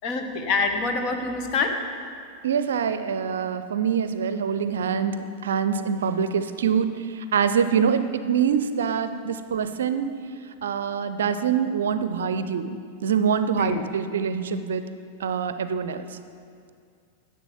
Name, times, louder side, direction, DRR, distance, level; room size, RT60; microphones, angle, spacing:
voice 1, 0.0-1.7 13.6-13.8, left 4 dB, 40° left, 5 dB, 1.2 m, -26 dB
voice 2, 2.4-6.9 7.3-10.1 10.6-12.8 13.0-14.8 15.2-16.1, right 7 dB, 65° right, 11 dB, 0.5 m, -25 dB
11.0 x 7.5 x 7.0 m, 2.3 s
figure-of-eight pair, 90°, 0 cm